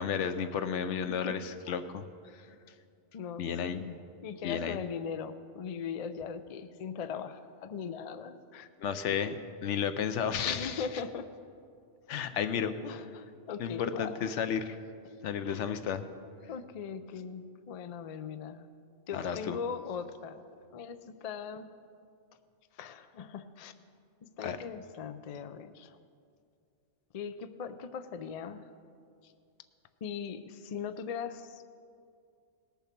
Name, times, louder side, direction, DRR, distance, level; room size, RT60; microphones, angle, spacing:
voice 1, 0.0-2.0 3.4-3.8 4.4-4.8 8.8-10.9 12.1-12.8 13.6-14.8 15.2-16.1 19.1-19.6 24.4-24.6, left 7 dB, 80° left, 10 dB, 1.0 m, -32 dB
voice 2, 3.1-8.7 10.5-11.3 12.8-14.3 15.5-15.8 16.5-18.7 19.1-20.4 20.7-21.7 22.7-23.7 24.2-26.0 27.1-28.7 30.0-31.6, left 6 dB, 50° left, 11 dB, 0.5 m, -40 dB
18.5 x 7.1 x 5.9 m, 2.4 s
omnidirectional pair, 1.2 m